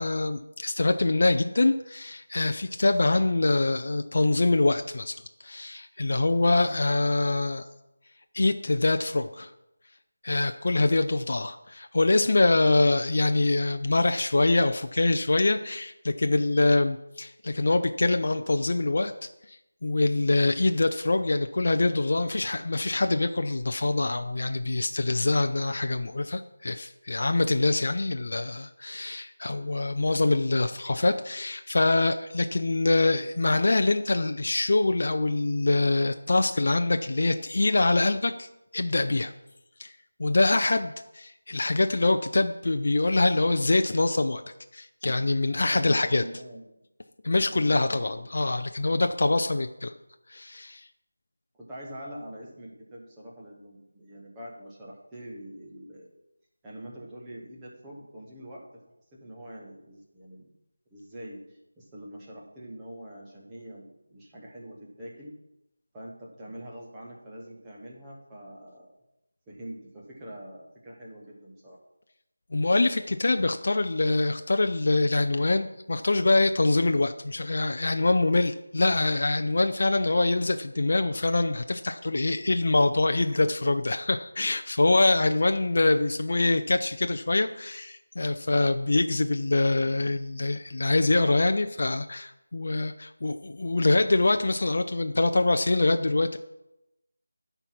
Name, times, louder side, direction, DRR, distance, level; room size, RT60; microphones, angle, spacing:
voice 1, 0.0-7.6 8.3-9.5 10.2-19.1 19.5-38.5 38.7-39.3 39.8-39.9 40.2-44.4 44.7-46.2 47.2-49.9 50.3-50.9 72.5-96.4, left 2 dB, 40° left, 7 dB, 0.4 m, -24 dB
voice 2, 45.6-46.6 47.4-48.3 51.5-56.1 56.6-58.7 59.1-60.5 60.9-65.4 65.9-68.9 69.5-71.8, right 1 dB, 5° right, -5 dB, 0.9 m, -44 dB
13.0 x 4.6 x 5.9 m, 0.90 s
figure-of-eight pair, 180°, 0 cm